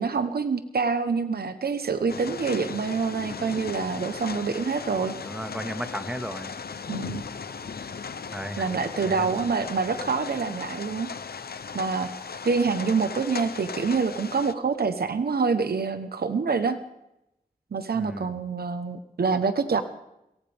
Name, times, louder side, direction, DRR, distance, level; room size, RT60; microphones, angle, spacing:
voice 1, 0.0-5.1 6.9-7.2 8.6-11.1 11.7-12.1 12.4-16.8 17.7-19.8, right 5 dB, 85° right, 9 dB, 1.1 m, -26 dB
sound 1, 2.1-14.5, left 5 dB, 85° left, 0.8 m, -37 dB
voice 2, 5.2-6.5 8.3-8.7 9.0-9.3 17.9-18.4, equal, 5° right, 7 dB, 1.9 m, -35 dB
23.0 x 17.5 x 3.6 m, 0.84 s
cardioid pair, 45°, 16 cm